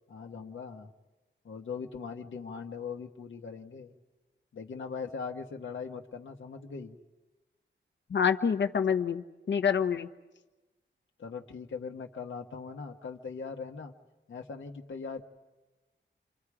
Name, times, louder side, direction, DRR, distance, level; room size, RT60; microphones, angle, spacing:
voice 1, 0.1-0.9 1.4-3.9 4.5-7.0 11.2-13.9 14.3-15.2, left 5 dB, 85° left, 3 dB, 1.4 m, -40 dB
voice 2, 8.1-10.1, left 7 dB, 70° left, 8 dB, 1.1 m, -27 dB
29.5 x 25.5 x 4.9 m, 1.1 s
wide cardioid pair, 160°, 20 cm